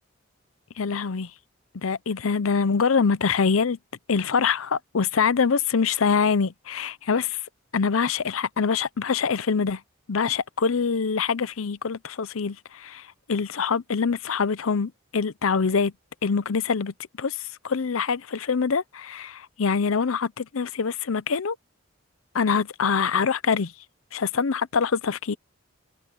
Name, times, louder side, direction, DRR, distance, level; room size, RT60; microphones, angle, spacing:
voice 1, 0.8-1.3 1.7-3.8 4.1-7.4 7.7-9.8 10.1-15.9 16.2-21.6 22.3-23.7 24.1-25.3, left 5 dB, 85° left, 0.7 m, -24 dB
head